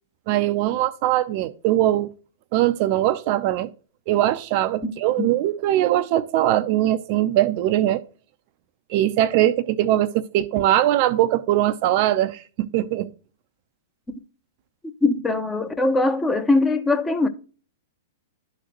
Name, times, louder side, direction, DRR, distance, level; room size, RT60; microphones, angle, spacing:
voice 1, 0.3-2.1 2.5-3.7 4.1-8.0 8.9-13.1, right 13 dB, 45° right, 0.5 m, -21 dB
voice 2, 15.0-17.3, left 2 dB, 10° left, 0.7 m, -21 dB
11.5 x 3.9 x 2.9 m
figure-of-eight pair, 105°, 0 cm